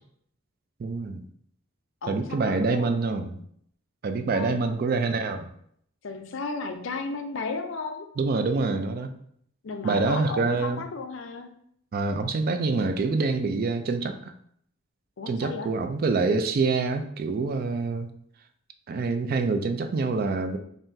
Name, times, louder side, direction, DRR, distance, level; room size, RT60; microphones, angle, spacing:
voice 1, 0.8-1.2 2.1-3.4 4.0-5.5 8.2-9.1 9.8-10.8 11.9-14.3 15.3-18.1 18.9-20.6, right 3 dB, 45° right, 8 dB, 0.3 m, -26 dB
voice 2, 2.0-3.0 4.3-4.8 6.0-8.1 9.6-11.5 15.2-15.7, left 3 dB, 65° left, 6 dB, 0.5 m, -34 dB
5.4 x 2.5 x 2.6 m, 0.68 s
head